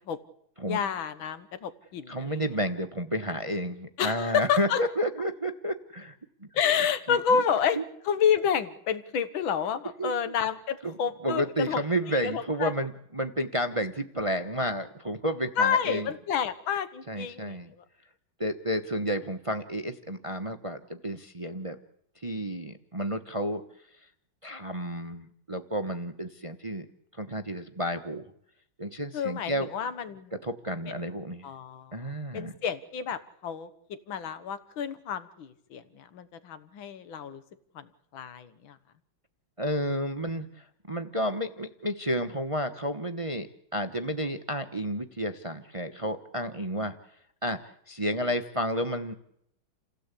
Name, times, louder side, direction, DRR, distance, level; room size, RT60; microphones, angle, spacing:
voice 1, 0.7-2.4 4.0-4.8 6.5-7.8 8.1-11.8 12.1-12.7 15.6-17.6 29.1-30.3 30.9-31.0 31.4-31.9 32.3-33.7 34.1-37.4 37.8-37.9 38.1-38.8, left 7 dB, 75° left, 12 dB, 2.0 m, -29 dB
voice 2, 2.1-6.2 7.1-7.4 7.7-7.8 10.0-10.3 10.8-16.1 17.1-17.7 18.4-21.8 22.2-23.6 24.4-26.9 27.2-28.2 28.8-29.7 30.3-31.5 31.9-32.6 39.6-47.0 47.4-47.6 47.9-49.1, equal, 25° right, 8 dB, 0.8 m, -31 dB
29.0 x 16.5 x 8.4 m, 0.73 s
omnidirectional pair, 2.2 m